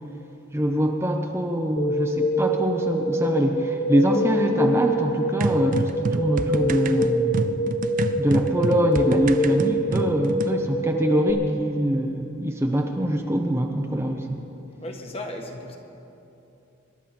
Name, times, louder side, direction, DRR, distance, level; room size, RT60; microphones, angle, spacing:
voice 1, 0.5-7.5 8.2-14.3, equal, 10° right, 2 dB, 0.8 m, -24 dB
sound 1, 1.8-11.3, equal, 55° left, 1.9 m, -25 dB
sound 2, 5.4-10.6, right 3 dB, 40° right, 0.4 m, -28 dB
voice 2, 14.8-15.8, left 1 dB, 30° left, 3 dB, 1.4 m, -35 dB
26.0 x 12.0 x 4.4 m, 2.9 s
head